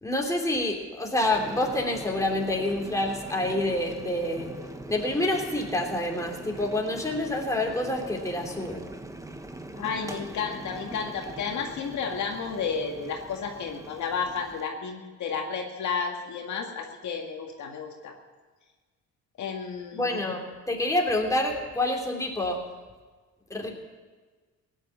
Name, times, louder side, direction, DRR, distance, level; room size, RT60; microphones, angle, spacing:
voice 1, 0.0-4.5 4.9-8.9 19.9-22.6 23.5-23.7, left 1 dB, 10° left, 0 dB, 3.0 m, -27 dB
Boiling, 1.2-14.7, right 1 dB, 10° right, 1.3 m, -42 dB
voice 2, 9.8-18.1 19.4-20.2, left 5 dB, 70° left, 2 dB, 1.9 m, -32 dB
16.5 x 10.0 x 7.1 m, 1.4 s
cardioid pair, 90°, 30 cm